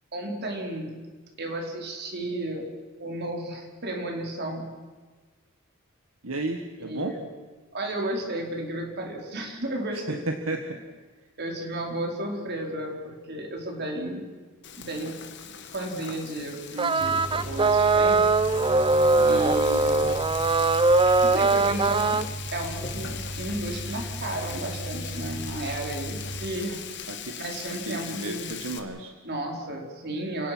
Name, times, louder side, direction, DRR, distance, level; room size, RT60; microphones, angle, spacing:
voice 1, 0.1-1.0 1.4-2.7 3.0-4.7 6.8-7.2 7.7-10.2 11.4-14.2 14.8-15.1 15.7-18.3 19.3-20.1 21.2-22.2 22.5-26.8 27.4-28.5 29.2-30.5, right 1 dB, 55° right, 2 dB, 4.8 m, -33 dB
voice 2, 6.2-7.2 9.9-10.8 19.2-19.5 27.1-27.4 27.7-29.1, right 2 dB, 75° right, 5 dB, 1.7 m, -33 dB
Frying (food), 14.6-28.8, left 9 dB, 55° left, 2.0 m, -40 dB
sound 1, 16.8-22.2, right 3 dB, 25° right, 0.6 m, -21 dB
sound 2, 17.0-26.5, right 1 dB, 40° left, 5.7 m, -37 dB
30.0 x 18.0 x 6.2 m, 1.4 s
head